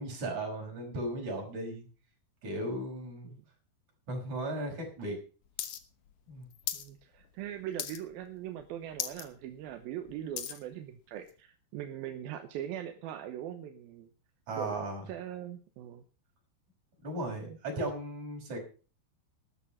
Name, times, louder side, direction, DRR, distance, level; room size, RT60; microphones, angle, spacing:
voice 1, 0.0-1.8 2.4-3.3 4.1-5.2 6.3-6.5 14.5-15.1 17.0-18.6, right 1 dB, 45° right, 0 dB, 6.3 m, -36 dB
sound 1, 5.6-5.8 6.1-6.9 7.2-7.5 7.8-8.2 8.6-8.7 8.9-9.3 9.7-10.6 11.3-11.4, left 10 dB, 65° left, 1.9 m, -37 dB
voice 2, 6.7-14.1 14.5-14.8 15.1-16.0 17.5-17.6, right 10 dB, 75° right, 7 dB, 2.5 m, -41 dB
13.0 x 11.0 x 5.6 m, 0.37 s
omnidirectional pair, 4.8 m